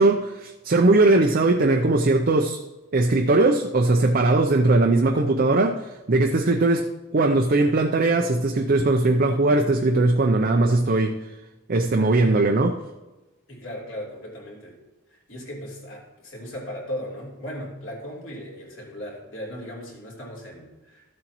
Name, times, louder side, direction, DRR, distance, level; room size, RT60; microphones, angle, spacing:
voice 1, 0.0-2.6 2.9-11.2 11.7-12.8, right 2 dB, 40° right, 0.5 m, -20 dB
voice 2, 13.5-14.8 15.1-21.1, equal, 60° left, 3.3 m, -37 dB
14.0 x 7.7 x 3.0 m
head